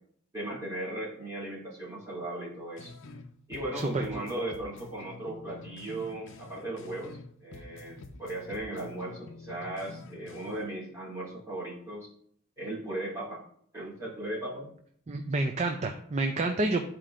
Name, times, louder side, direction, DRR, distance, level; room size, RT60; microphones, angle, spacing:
voice 1, 0.3-2.9 3.5-12.1 12.6-13.4 13.7-14.7, right 1 dB, 15° right, -7 dB, 2.7 m, -37 dB
sound 1, 2.8-3.3 3.5-7.3 7.5-10.7, left 3 dB, 60° left, 0.6 m, -48 dB
voice 2, 3.7-4.2 15.1-16.9, right 2 dB, 30° right, 4 dB, 0.4 m, -29 dB
12.5 x 4.4 x 2.5 m, 0.65 s
head